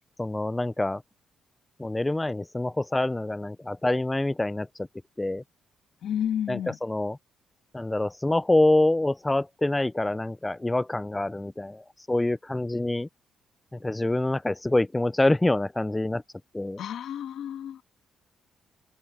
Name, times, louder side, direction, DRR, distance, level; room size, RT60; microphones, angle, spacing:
voice 1, 0.2-1.0 1.8-4.7 5.2-5.4 6.5-7.2 7.7-13.1 13.8-16.2 16.5-16.8, left 2 dB, 15° left, 0.5 m, -26 dB
voice 2, 6.0-6.8 16.8-17.8, left 9 dB, 70° left, 2.3 m, -31 dB
open air
cardioid pair, 90°, 0 cm